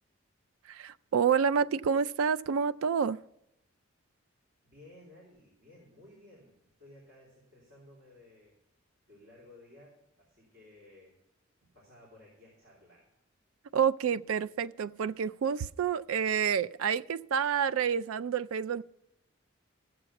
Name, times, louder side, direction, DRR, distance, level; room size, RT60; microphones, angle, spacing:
voice 1, 0.7-3.2 13.7-18.8, right 7 dB, 85° right, 0.3 m, -28 dB
voice 2, 4.6-8.6 9.1-11.2 11.6-13.1, left 1 dB, 55° right, 3.5 m, -56 dB
13.5 x 7.9 x 5.8 m
head